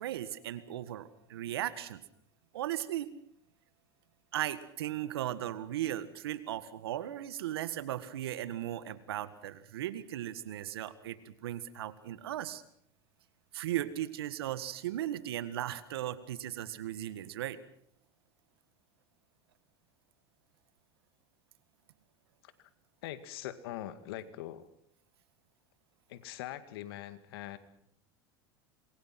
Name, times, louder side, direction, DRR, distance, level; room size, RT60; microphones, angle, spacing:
voice 1, 0.0-2.0 2.5-3.1 4.3-12.6 13.5-17.6, right 12 dB, 85° right, 13 dB, 1.8 m, -37 dB
voice 2, 23.0-24.7 26.1-27.6, left 13 dB, 75° left, 11 dB, 2.1 m, -42 dB
26.5 x 22.0 x 6.0 m, 0.69 s
hypercardioid pair, 100°, 13 cm